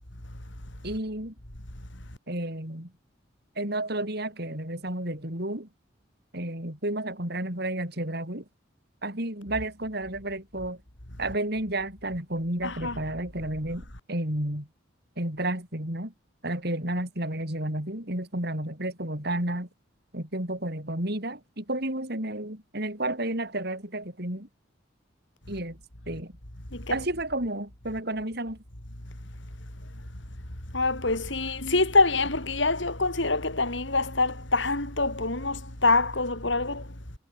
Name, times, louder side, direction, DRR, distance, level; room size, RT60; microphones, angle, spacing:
voice 1, 0.8-1.3 2.3-2.9 3.6-5.7 6.3-8.4 9.0-10.8 11.2-14.7 15.2-16.1 16.4-19.7 20.1-24.5 25.5-25.8 26.1-26.3 26.9-28.6, right 1 dB, 55° right, 6.3 m, -31 dB
voice 2, 12.6-13.0 26.7-27.0 30.0-30.1 30.7-37.0, left 3 dB, 70° left, 5.1 m, -25 dB
head